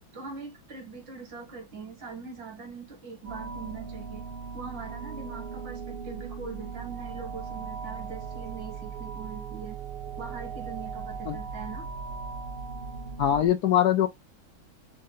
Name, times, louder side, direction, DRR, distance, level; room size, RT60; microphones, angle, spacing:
voice 1, 0.1-4.3 4.5-9.8 10.2-11.9, right 4 dB, 70° right, 2.2 m, -42 dB
sound 1, 3.2-13.5, right 6 dB, 85° right, 0.5 m, -38 dB
voice 2, 13.2-14.1, left 10 dB, 70° left, 1.0 m, -22 dB
5.3 x 2.6 x 3.9 m
omnidirectional pair, 2.2 m